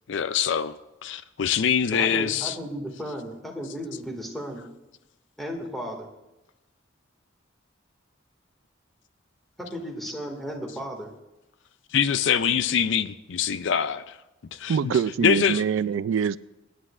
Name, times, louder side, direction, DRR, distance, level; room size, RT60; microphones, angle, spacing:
voice 1, 0.1-0.8 1.0-2.6 11.9-14.2 14.6-15.6, left 7 dB, 65° left, 0.4 m, -24 dB
voice 2, 1.9-4.6 5.4-6.1 9.6-11.1, equal, ahead, 1.9 m, -35 dB
voice 3, 14.7-16.4, right 7 dB, 75° right, 0.3 m, -24 dB
25.0 x 10.0 x 2.5 m
head